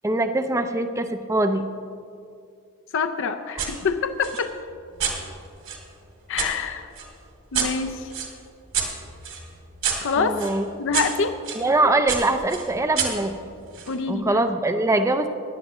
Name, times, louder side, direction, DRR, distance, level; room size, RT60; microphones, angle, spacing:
voice 1, 0.0-1.6 3.5-3.7 10.2-10.7 11.5-13.3 14.1-15.3, right 2 dB, 15° right, 8 dB, 0.4 m, -23 dB
voice 2, 2.9-4.5 6.3-6.9 7.5-8.1 10.0-10.4 10.8-11.3 13.9-14.4, left 5 dB, 55° left, 8 dB, 0.5 m, -26 dB
sound 1, 3.6-3.7 4.2-6.5 7.0-11.6 12.1-14.0, right 6 dB, 60° right, 2.0 m, -30 dB
16.0 x 11.0 x 3.0 m, 2.4 s
head